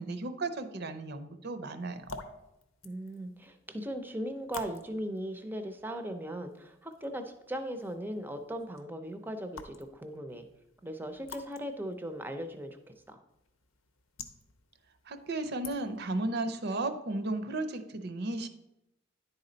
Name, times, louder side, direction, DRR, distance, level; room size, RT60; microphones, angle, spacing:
voice 1, 0.0-2.0 15.1-18.5, right 2 dB, 50° right, 9 dB, 0.6 m, -34 dB
sound 1, 1.8-16.2, left 4 dB, 85° left, 0.7 m, -51 dB
voice 2, 2.8-10.4 10.8-12.8 13.1-13.2, right 1 dB, 10° right, 7 dB, 0.5 m, -38 dB
10.0 x 4.2 x 3.9 m, 0.88 s
head